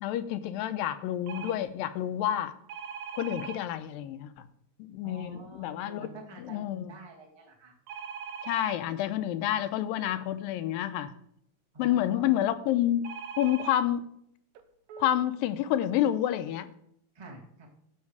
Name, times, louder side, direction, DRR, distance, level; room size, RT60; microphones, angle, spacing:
voice 1, 0.0-2.5 3.2-4.3 4.8-6.1 6.4-6.9 8.4-11.1 11.8-13.0 13.4-14.1 15.0-16.7, left 12 dB, 85° left, 2.3 m, -29 dB
sound 1, 1.3-1.6 2.7-3.6 7.9-8.8 13.0-13.7 14.6-14.7 14.9-15.1, right 6 dB, 75° right, 2.6 m, -40 dB
voice 2, 5.0-7.7 11.7-12.4 17.1-17.7, right 1 dB, 15° right, 1.0 m, -46 dB
15.0 x 6.4 x 4.7 m
omnidirectional pair, 4.1 m